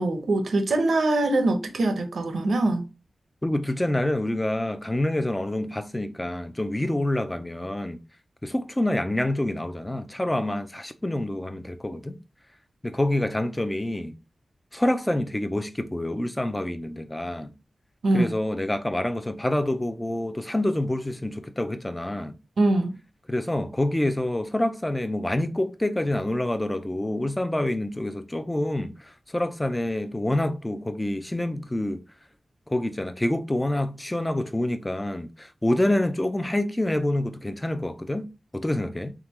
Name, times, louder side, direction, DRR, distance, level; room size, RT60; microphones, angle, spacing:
voice 1, 0.0-2.8 18.0-18.3 22.6-22.9, right 2 dB, 85° right, 0.8 m, -23 dB
voice 2, 3.4-8.0 8.4-12.2 12.8-14.2 14.7-17.5 18.1-22.4 23.3-32.0 32.7-39.1, left 1 dB, 15° left, 0.5 m, -27 dB
3.9 x 3.6 x 3.0 m
wide cardioid pair, 120°, 0 cm